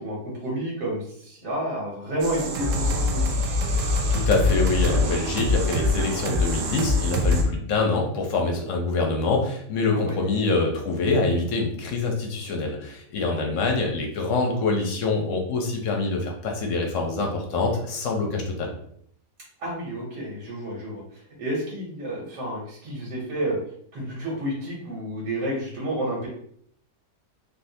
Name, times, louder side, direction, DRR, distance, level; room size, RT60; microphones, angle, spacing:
voice 1, 0.0-3.4 9.9-10.2 13.3-13.5 19.6-23.6 23.9-26.3, right 1 dB, 90° right, -4 dB, 1.6 m, -30 dB
sound 1, 2.2-7.4, left 2 dB, 70° right, 0.7 m, -24 dB
voice 2, 3.8-18.7, left 3 dB, 60° left, 1 dB, 0.8 m, -25 dB
3.6 x 2.6 x 2.7 m, 0.65 s
omnidirectional pair, 1.8 m